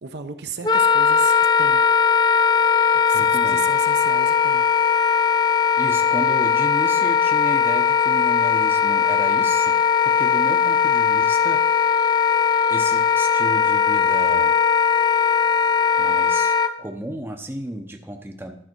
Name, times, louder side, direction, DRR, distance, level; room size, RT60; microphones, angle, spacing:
voice 1, 0.0-1.8 3.1-4.7, right 5 dB, 65° right, 7 dB, 0.8 m, -35 dB
Wind instrument woodwind instrument, 0.6-16.7, left 7 dB, 25° left, 0.5 m, -19 dB
voice 2, 3.1-3.6 5.8-9.8 10.2-11.6 12.7-14.5 16.0-18.5, right 1 dB, 10° right, 4 dB, 0.7 m, -33 dB
12.0 x 5.5 x 4.5 m, 0.74 s
head